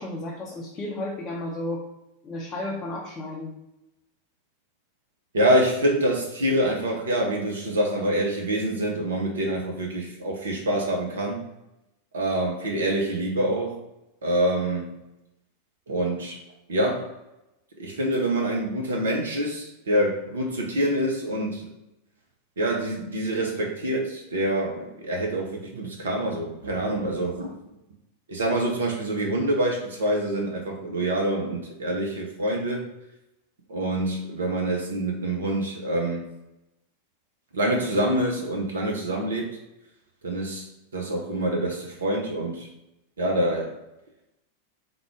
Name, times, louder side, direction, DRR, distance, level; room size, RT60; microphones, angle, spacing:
voice 1, 0.0-1.9 2.2-3.5, left 1 dB, 25° left, -3 dB, 0.6 m, -33 dB
voice 2, 5.3-11.4 12.1-13.8 14.2-15.0 15.9-16.4 16.7-17.1 17.8-21.6 22.6-27.5 28.3-32.9 33.7-36.2 37.5-39.6 40.2-40.7 40.9-42.7 43.2-43.8, right 1 dB, 65° right, 0 dB, 0.7 m, -26 dB
3.6 x 2.3 x 3.5 m, 0.91 s
figure-of-eight pair, 90°, 0 cm